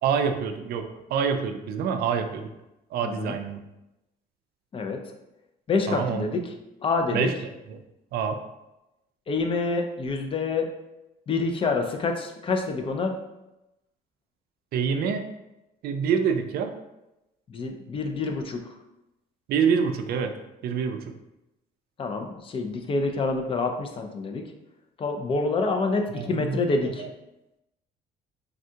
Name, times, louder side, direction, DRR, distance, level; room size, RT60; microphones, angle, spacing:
voice 1, 0.0-2.5 2.9-3.6 5.9-6.4 7.1-7.8 8.1-8.4 14.7-15.3 15.8-16.7 19.5-20.3 20.6-21.1 26.1-27.1, right 6 dB, 65° right, 7 dB, 0.4 m, -27 dB
voice 2, 3.0-3.3 4.7-5.0 5.7-6.4 6.8-7.3 9.3-10.7 11.3-13.1 17.5-18.6 22.0-24.4 25.0-27.0, left 3 dB, 30° left, 4 dB, 0.4 m, -27 dB
3.5 x 2.3 x 2.7 m, 0.94 s
cardioid pair, 110°, 17 cm